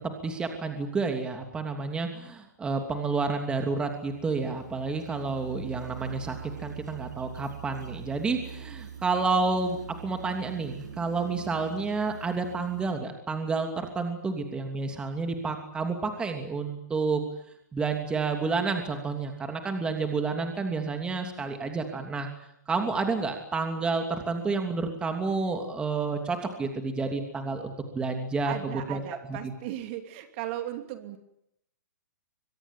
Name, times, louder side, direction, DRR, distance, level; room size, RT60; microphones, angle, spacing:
voice 1, 0.2-17.2 17.7-22.3 22.7-29.0 29.3-29.5, right 4 dB, 10° right, 5 dB, 2.9 m, -30 dB
sound 1, 3.5-12.9, right 7 dB, 85° right, 7.8 m, -43 dB
voice 2, 28.4-31.2, right 12 dB, 40° right, 7 dB, 2.9 m, -36 dB
23.5 x 21.5 x 9.1 m, 0.78 s
hypercardioid pair, 150°, 10 cm